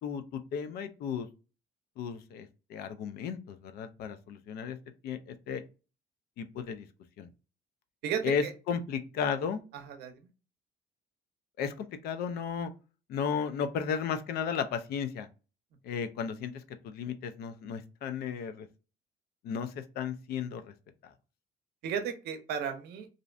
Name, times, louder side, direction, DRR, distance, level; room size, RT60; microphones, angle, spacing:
voice 1, 0.0-1.3 2.0-4.8 5.0-5.6 6.4-6.9 7.2-7.3 8.2-9.6 11.6-12.7 13.1-15.3 15.8-16.5 16.8-18.7 19.4-20.7 21.0-21.1, left 7 dB, 70° left, 10 dB, 0.4 m, -34 dB
voice 2, 8.0-8.5 9.8-10.1 21.8-23.1, right 7 dB, 75° right, 7 dB, 0.6 m, -34 dB
2.5 x 2.1 x 2.4 m, 0.32 s
cardioid pair, 110°, 17 cm